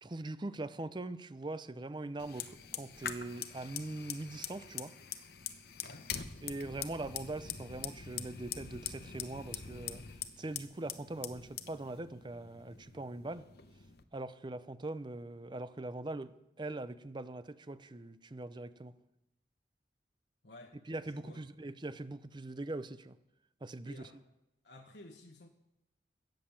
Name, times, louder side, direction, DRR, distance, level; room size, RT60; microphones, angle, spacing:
voice 1, 0.0-4.9 6.4-10.0 10.4-13.5 14.1-19.0 20.9-23.2 23.6-24.1, right 2 dB, 25° right, 0.6 m, -42 dB
Fire, 2.2-14.0, left 8 dB, 60° left, 0.8 m, -44 dB
voice 2, 5.8-6.1 20.4-21.4 23.8-24.2 24.6-25.5, left 2 dB, 80° left, 1.2 m, -54 dB
17.0 x 7.5 x 7.2 m
head